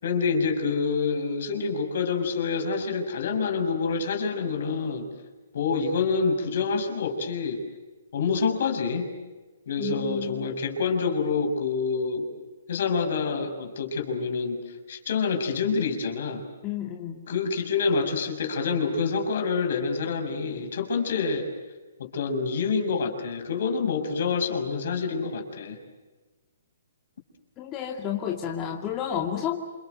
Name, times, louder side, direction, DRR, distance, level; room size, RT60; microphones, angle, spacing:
voice 1, 0.0-5.1 5.5-7.6 8.1-9.1 9.7-12.3 12.7-16.5 17.3-21.5 22.0-25.8, left 5 dB, 60° left, 5 dB, 6.4 m, -27 dB
voice 2, 9.8-10.5 16.6-17.2 27.6-29.6, left 9 dB, 25° left, 1 dB, 2.5 m, -31 dB
28.0 x 25.5 x 7.9 m, 1.2 s
hypercardioid pair, 145°, 0 cm